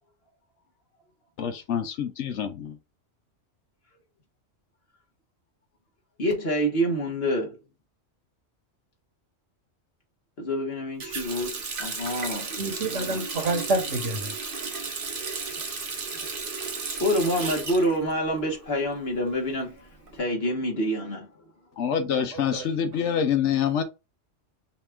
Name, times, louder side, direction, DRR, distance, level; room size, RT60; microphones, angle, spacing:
voice 1, 1.4-2.8 21.8-23.8, left 8 dB, 70° left, 1.0 m, -26 dB
voice 2, 6.2-7.6 10.4-11.5 11.8-12.5 17.0-19.8 20.1-21.3, equal, 55° left, 1.7 m, -26 dB
Water tap faucet, 11.0-18.7 19.1-20.1, right 4 dB, 50° right, 1.0 m, -34 dB
voice 3, 12.6-14.3 22.3-22.7, right 2 dB, 75° right, 1.8 m, -28 dB
5.7 x 2.5 x 3.5 m
omnidirectional pair, 1.3 m